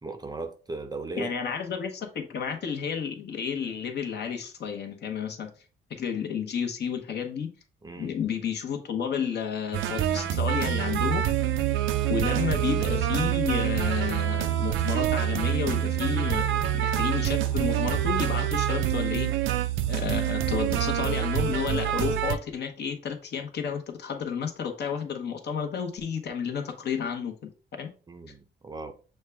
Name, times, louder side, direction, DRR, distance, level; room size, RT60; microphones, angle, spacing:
voice 1, 0.0-1.3 7.8-8.1 28.1-28.9, right 3 dB, 20° right, 0.5 m, -37 dB
voice 2, 1.2-5.5 5.9-7.5 8.0-11.2 12.1-19.3 19.9-27.9, left 7 dB, 55° left, 0.9 m, -31 dB
sound 1, 9.7-22.3, right 11 dB, 75° right, 0.5 m, -26 dB
6.3 x 2.2 x 3.4 m
cardioid pair, 90°, 20 cm